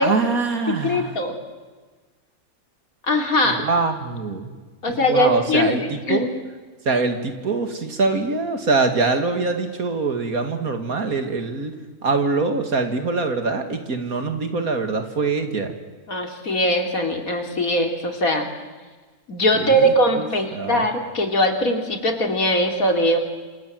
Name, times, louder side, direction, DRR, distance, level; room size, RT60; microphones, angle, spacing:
voice 1, 0.0-1.1 3.4-4.5 4.9-6.3 6.9-15.7 19.5-20.8, right 3 dB, 70° right, 7 dB, 2.8 m, -24 dB
voice 2, 0.7-1.4 3.0-3.6 4.8-6.3 16.1-18.5 19.3-23.2, equal, 70° left, 4 dB, 3.5 m, -21 dB
28.0 x 27.0 x 7.8 m, 1.4 s
omnidirectional pair, 1.5 m